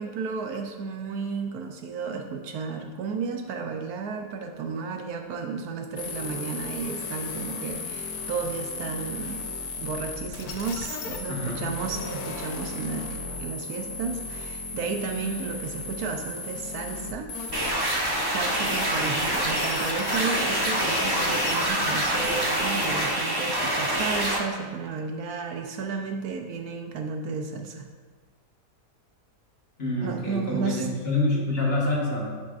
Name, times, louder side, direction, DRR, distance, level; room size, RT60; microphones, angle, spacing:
voice 1, 0.0-9.4 9.8-17.3 17.8-27.9 30.0-30.9, right 5 dB, 70° right, 4 dB, 1.0 m, -33 dB
sound 1, 6.0-23.0, left 4 dB, 70° left, 1.1 m, -36 dB
voice 2, 11.3-11.7 29.8-32.4, left 2 dB, 45° left, -2 dB, 1.1 m, -27 dB
sound 2, 17.5-24.4, right 1 dB, 35° right, 0.3 m, -26 dB
10.5 x 5.0 x 2.4 m, 1.5 s
omnidirectional pair, 1.7 m